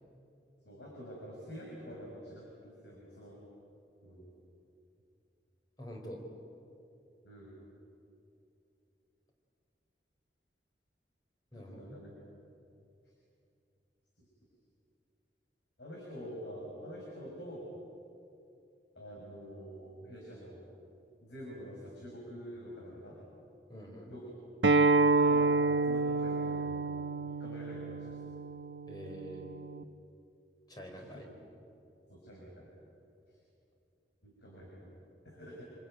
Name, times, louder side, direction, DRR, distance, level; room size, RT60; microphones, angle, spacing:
voice 1, 0.6-3.4 4.0-4.3 7.2-7.6 11.5-12.1 15.8-17.7 18.9-20.6 21.2-23.2 24.1-24.3 25.1-28.4 30.9-31.2 32.1-32.7 33.3-33.4 34.2-34.9 35.2-35.7, equal, 90° left, -3 dB, 6.0 m, -47 dB
voice 2, 5.8-6.2 11.5-12.0 23.7-24.1 28.9-29.5 30.7-31.3, equal, 25° left, 1 dB, 4.1 m, -46 dB
Acoustic guitar, 24.6-29.8, right 3 dB, 85° right, 0.8 m, -29 dB
27.0 x 21.0 x 9.2 m, 2.7 s
head